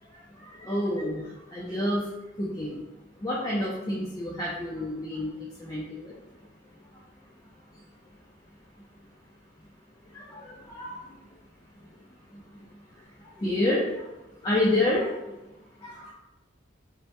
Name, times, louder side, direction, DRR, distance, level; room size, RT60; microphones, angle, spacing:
voice 1, 0.4-2.1 2.4-2.8 3.2-6.1 10.1-11.2 12.3-12.4 13.4-14.1 14.4-15.2 15.8-16.1, left 1 dB, 20° left, -6 dB, 0.3 m, -29 dB
2.1 x 2.1 x 2.8 m, 1.0 s
head